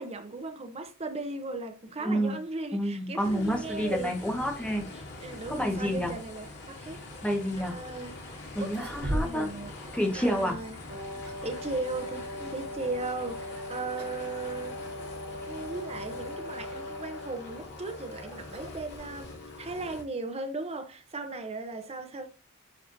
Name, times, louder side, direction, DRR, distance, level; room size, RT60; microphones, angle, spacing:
voice 1, 0.0-4.1 5.2-7.0 7.5-8.5 9.1-9.7 10.1-10.8 11.4-14.8 15.5-22.3, right 3 dB, 30° right, 0.9 m, -37 dB
voice 2, 2.0-2.4 2.7-4.9 5.5-6.1 7.2-7.8 8.5-9.5 9.9-10.6, equal, 5° left, 1.5 m, -29 dB
sound 1, 3.2-20.0, left 2 dB, 50° left, 2.8 m, -44 dB
sound 2, 8.5-9.6 9.9-10.0 10.8-11.6 13.4-13.6 14.0-14.3 14.6-14.7 15.4-15.5 17.3-19.4, right 1 dB, 50° right, 1.8 m, -37 dB
Wind instrument woodwind instrument, 10.9-17.6, left 1 dB, 65° right, 4.4 m, -40 dB
10.5 x 4.9 x 2.7 m
head